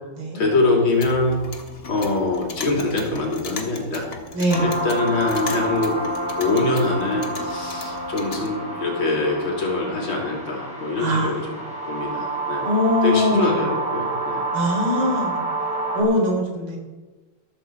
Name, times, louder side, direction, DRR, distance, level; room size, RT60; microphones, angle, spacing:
voice 1, 0.3-1.4 1.9-4.1 4.6-6.0 6.4-11.6 11.9-12.7 13.0-14.4, left 3 dB, 75° left, -1 dB, 3.8 m, -24 dB
Clock, 0.8-8.5, left 3 dB, 50° left, 2.1 m, -36 dB
voice 2, 4.3-4.7 11.0-11.5 12.6-13.6 14.5-15.4 15.9-16.8, left 1 dB, 90° right, 1 dB, 4.4 m, -22 dB
sound 1, 4.5-16.0, right 2 dB, 5° right, 4.0 m, -28 dB
13.5 x 13.5 x 4.7 m, 1.2 s
omnidirectional pair, 2.3 m